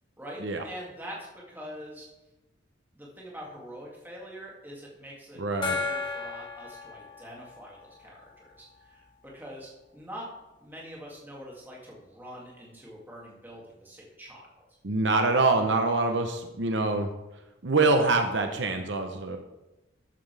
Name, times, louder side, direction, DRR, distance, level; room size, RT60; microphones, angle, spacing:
voice 1, 0.2-2.1 2.9-10.3 10.6-14.5, equal, 10° right, -4 dB, 2.4 m, -44 dB
voice 2, 5.4-5.8 14.8-17.1 17.6-19.4, right 3 dB, 65° right, 5 dB, 0.9 m, -25 dB
Gong, 5.6-8.9, left 4 dB, 25° left, 1.8 m, -35 dB
13.0 x 9.5 x 3.4 m, 1.0 s
head